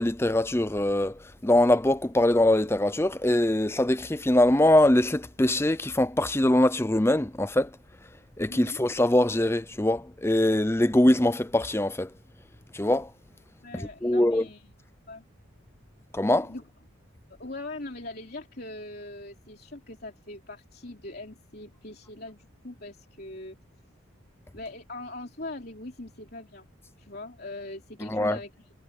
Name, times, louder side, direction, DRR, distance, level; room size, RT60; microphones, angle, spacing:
voice 1, 0.0-7.7 8.4-12.1 12.7-13.1 13.7-14.4 16.1-16.5 28.0-28.4, left 1 dB, 10° left, 0.6 m, -23 dB
voice 2, 8.5-8.8 13.6-14.7 15.1-15.2 16.4-16.6 17.3-23.6 24.5-26.6 27.0-28.5, left 2 dB, 50° left, 3.3 m, -41 dB
head